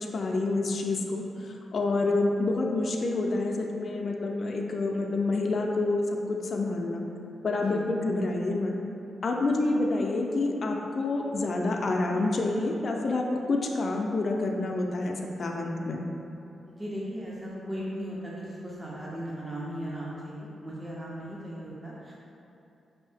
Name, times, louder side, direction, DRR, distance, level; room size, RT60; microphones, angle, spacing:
voice 1, 0.0-6.0 6.3-7.1 7.4-8.8 9.2-16.1, left 2 dB, 50° left, 0 dB, 0.4 m, -28 dB
voice 2, 16.7-22.1, equal, 20° right, -6 dB, 0.6 m, -37 dB
5.3 x 2.6 x 3.4 m, 2.7 s
cardioid pair, 95°, 0 cm